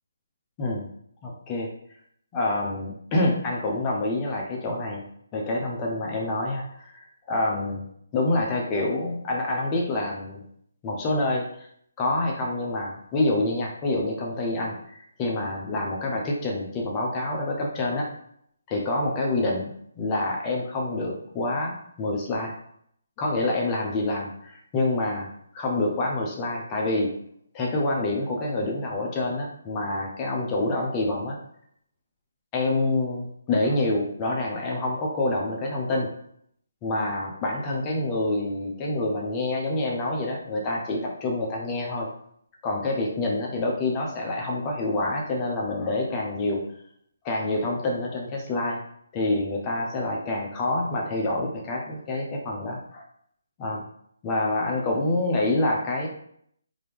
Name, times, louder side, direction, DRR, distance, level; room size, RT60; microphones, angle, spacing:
voice 1, 1.2-1.7 2.3-5.0 5.3-7.9 8.1-10.4 10.8-11.7 12.0-18.1 18.7-22.5 23.2-25.3 25.5-27.1 27.5-31.4 32.5-36.1 36.8-42.1 42.6-46.6 47.2-48.8 49.1-53.0 53.6-53.8 54.2-56.1, left 2 dB, 20° left, -1 dB, 0.7 m, -27 dB
3.7 x 2.8 x 3.4 m, 0.67 s
hypercardioid pair, 155°, 0 cm